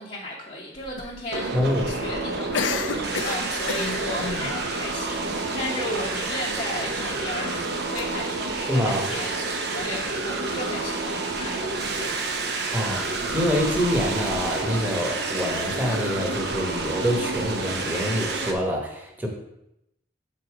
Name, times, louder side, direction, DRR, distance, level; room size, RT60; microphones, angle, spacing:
voice 1, 0.0-12.2, left 1 dB, 40° left, -4 dB, 0.9 m, -35 dB
sound 1, 0.8-18.7, left 4 dB, 90° left, 0.6 m, -38 dB
sound 2, 1.3-18.5, right 3 dB, 60° right, 0.8 m, -29 dB
voice 2, 1.5-2.0 8.7-9.1 12.7-19.3, equal, 10° right, 0 dB, 1.1 m, -26 dB
6.3 x 3.9 x 4.8 m, 0.84 s
head